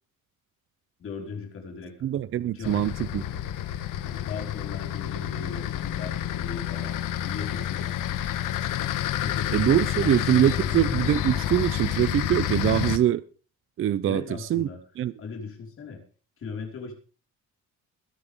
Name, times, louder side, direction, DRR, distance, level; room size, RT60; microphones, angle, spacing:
voice 1, 1.0-1.9 2.5-2.9 4.0-7.9 9.2-10.2 14.1-14.8 15.2-16.0 16.4-16.9, left 5 dB, 40° left, 5.0 m, -38 dB
voice 2, 2.0-3.2 9.5-13.2 13.8-14.2 14.5-14.7 15.0-15.1, right 11 dB, 40° right, 0.6 m, -23 dB
sound 1, 2.6-13.0, left 11 dB, 75° left, 1.4 m, -29 dB
22.0 x 9.8 x 3.7 m
cardioid pair, 170°, 32 cm